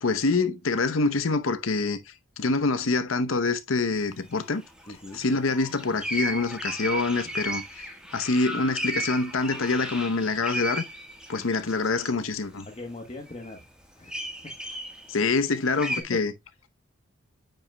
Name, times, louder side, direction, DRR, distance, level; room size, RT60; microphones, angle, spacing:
voice 1, 0.0-2.0 2.4-4.6 5.1-10.8 11.3-12.7 15.1-16.3, left 3 dB, 85° left, 0.8 m, -26 dB
sound 1, 4.0-4.1 4.3-12.1 12.6-12.8 13.3-13.6 14.1-16.0, right 1 dB, 5° right, 1.4 m, -35 dB
voice 2, 4.9-5.2 7.2-7.3 12.7-13.6 13.9-14.5 14.9-15.0 16.1-16.2, left 2 dB, 30° left, 1.1 m, -41 dB
9.0 x 5.7 x 2.2 m
head